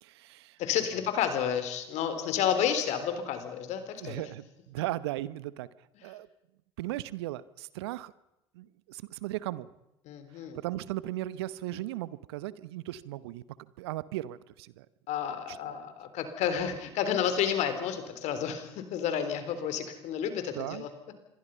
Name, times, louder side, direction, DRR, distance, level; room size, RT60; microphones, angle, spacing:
voice 1, 0.0-0.6 4.0-5.7 6.0-6.3 6.8-8.1 8.5-9.7 10.5-14.9 15.5-15.8 20.5-20.9, right 15 dB, 70° right, 18 dB, 0.9 m, -37 dB
voice 2, 0.6-4.2 10.1-10.6 15.1-20.9, left 8 dB, 55° left, 9 dB, 3.9 m, -31 dB
26.5 x 22.0 x 5.6 m, 0.91 s
figure-of-eight pair, 65°, 14 cm